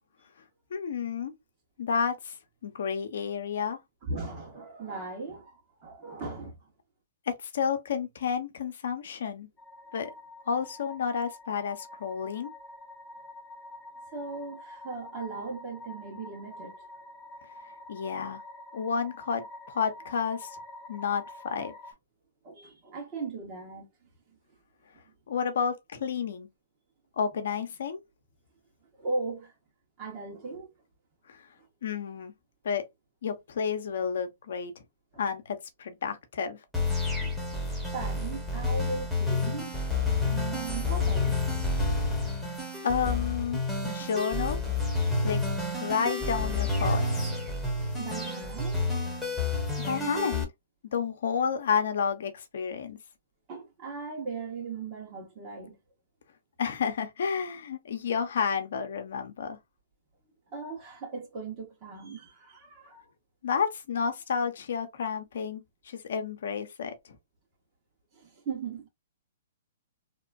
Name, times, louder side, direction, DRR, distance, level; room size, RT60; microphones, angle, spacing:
voice 1, 0.7-1.3 1.8-2.3 2.6-3.8 7.3-9.5 9.9-10.1 10.5-12.5 17.9-18.4 18.7-20.5 20.9-21.7 25.3-26.5 27.2-28.0 31.8-32.3 32.6-32.8 33.2-34.7 35.2-36.6 42.8-43.6 43.8-44.6 45.2-45.4 45.8-47.3 49.8-50.5 50.9-53.0 56.6-59.6 63.4-66.9, left 6 dB, 70° left, 0.7 m, -30 dB
voice 2, 4.0-6.7 14.1-16.9 22.4-23.9 25.0-25.1 29.0-29.5 30.0-30.7 35.1-35.2 37.2-39.7 40.2-41.4 48.0-48.9 53.5-55.8 60.5-63.0 68.1-68.9, right 3 dB, 35° right, 1.4 m, -38 dB
sound 1, 9.6-21.9, left 1 dB, 20° left, 0.5 m, -47 dB
sound 2, 36.7-50.4, left 3 dB, ahead, 1.0 m, -29 dB
2.9 x 2.2 x 2.5 m
hypercardioid pair, 135°, 0 cm